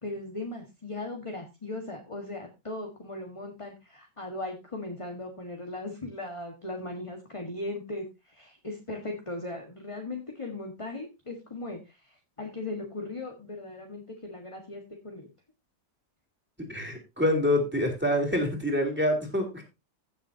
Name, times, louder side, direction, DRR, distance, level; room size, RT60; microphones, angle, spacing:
voice 1, 0.0-15.3, left 2 dB, 20° left, 2 dB, 1.5 m, -38 dB
voice 2, 16.6-19.6, left 1 dB, 5° right, 2 dB, 3.4 m, -26 dB
16.0 x 7.3 x 2.8 m, 0.26 s
omnidirectional pair, 1.9 m